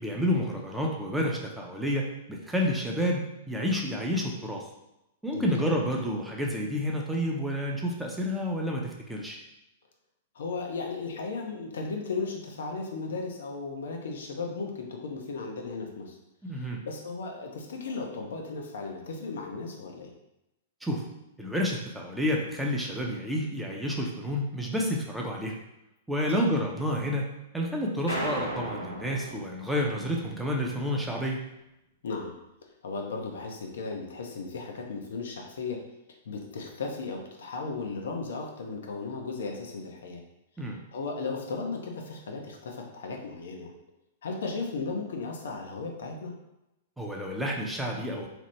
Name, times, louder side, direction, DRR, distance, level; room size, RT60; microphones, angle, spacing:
voice 1, 0.0-4.7 5.2-9.4 16.4-16.8 20.8-21.0 21.4-25.5 26.1-27.3 27.5-31.4 40.6-40.8 47.0-48.3, equal, 5° right, -1 dB, 0.6 m, -29 dB
voice 2, 5.3-5.7 10.3-16.2 16.6-20.1 26.3-26.4 32.0-32.3 32.8-35.8 36.3-40.2 40.9-43.7 44.2-46.3, left 4 dB, 70° left, 2 dB, 0.5 m, -35 dB
sound 1, 28.1-30.5, equal, 90° left, 0.8 m, -35 dB
2.9 x 2.0 x 3.1 m, 0.90 s
hypercardioid pair, 105°, 0 cm